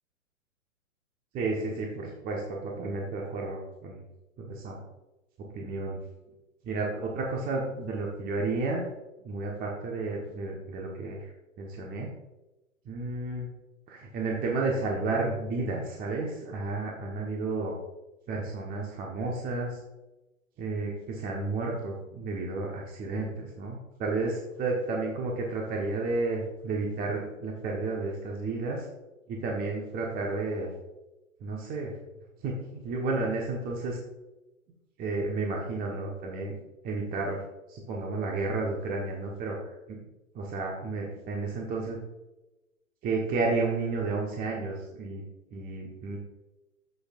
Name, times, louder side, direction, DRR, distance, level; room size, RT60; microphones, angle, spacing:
voice 1, 1.3-4.0 4.4-4.8 5.5-6.0 6.6-8.9 9.2-11.3 11.6-12.1 12.8-13.5 13.9-17.7 18.3-19.8 20.6-28.9 29.3-30.7 31.4-31.9 32.4-34.0 35.0-36.5 36.8-37.4 37.7-40.0 40.3-42.0 43.0-45.2 45.5-46.2, right 3 dB, 20° right, -1 dB, 1.3 m, -32 dB
11.5 x 8.0 x 2.5 m, 1.0 s
figure-of-eight pair, 110°, 41 cm